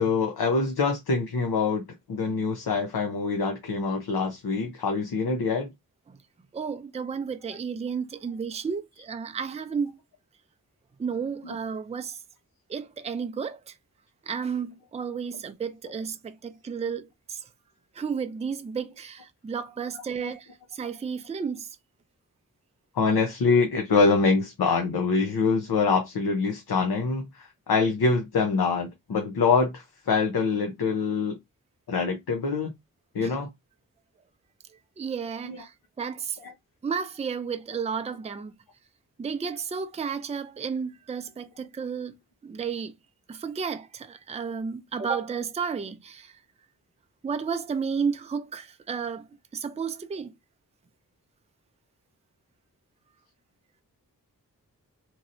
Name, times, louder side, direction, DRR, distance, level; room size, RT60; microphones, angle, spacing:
voice 1, 0.0-5.7 11.4-11.5 20.2-20.3 22.9-31.4 31.9-32.7 33.1-33.5 35.4-35.6 36.4-36.5, left 4 dB, 90° left, 0.8 m, -25 dB
voice 2, 6.5-10.0 11.0-12.2 12.7-13.7 14.3-17.4 17.9-21.7 33.2-33.4 35.0-36.4 36.8-38.5 39.2-42.2 42.4-42.9 43.3-46.3 47.2-49.3 49.5-50.3, right 6 dB, 20° right, 0.4 m, -32 dB
3.0 x 2.7 x 2.5 m
wide cardioid pair, 80°, 36 cm